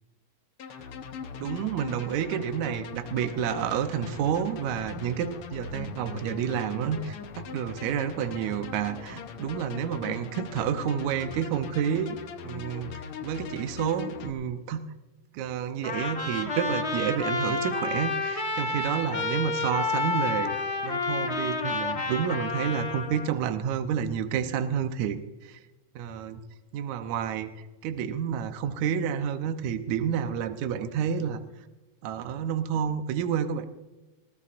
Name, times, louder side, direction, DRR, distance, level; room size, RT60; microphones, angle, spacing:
sound 1, 0.6-14.3, left 7 dB, 70° left, 1.4 m, -40 dB
voice 1, 1.4-12.2 12.4-12.9 13.2-14.8 15.3-20.5 20.8-25.6 26.0-26.4 26.7-31.4 32.0-33.6, right 8 dB, 70° right, 8 dB, 2.0 m, -29 dB
Trumpet, 15.8-23.3, left 3 dB, 55° left, 0.7 m, -30 dB
19.5 x 16.5 x 2.5 m, 1.1 s
omnidirectional pair, 3.7 m